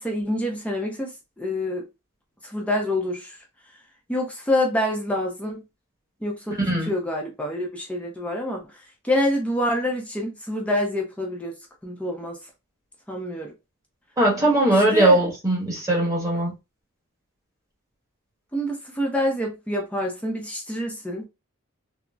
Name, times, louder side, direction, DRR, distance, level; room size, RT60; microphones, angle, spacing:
voice 1, 0.0-1.9 2.5-3.4 4.1-5.6 6.2-6.5 6.8-8.6 9.0-11.5 11.8-12.4 13.1-13.5 14.7-15.2 18.5-21.3, left 1 dB, 5° left, 0.5 m, -26 dB
voice 2, 14.2-16.5, right 1 dB, 15° right, 1.1 m, -20 dB
3.8 x 2.0 x 2.3 m
head